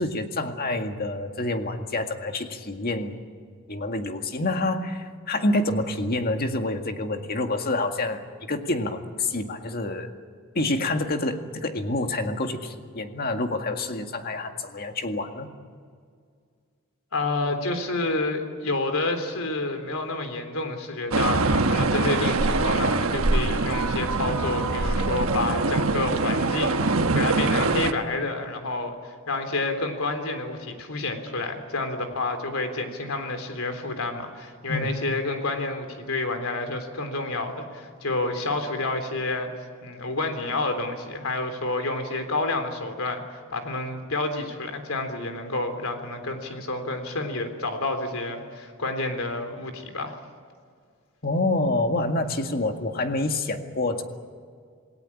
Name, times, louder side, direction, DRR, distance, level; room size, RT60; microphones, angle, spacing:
voice 1, 0.0-3.2 3.7-10.1 10.6-15.5 34.7-34.9 51.2-54.0, left 2 dB, 45° left, 5 dB, 2.0 m, -27 dB
voice 2, 17.1-39.5 39.8-43.2 43.5-50.2, left 2 dB, 80° left, 7 dB, 3.5 m, -29 dB
sound 1, 21.1-27.9, right 3 dB, 75° right, 1.3 m, -23 dB
27.5 x 18.5 x 8.7 m, 2.1 s
head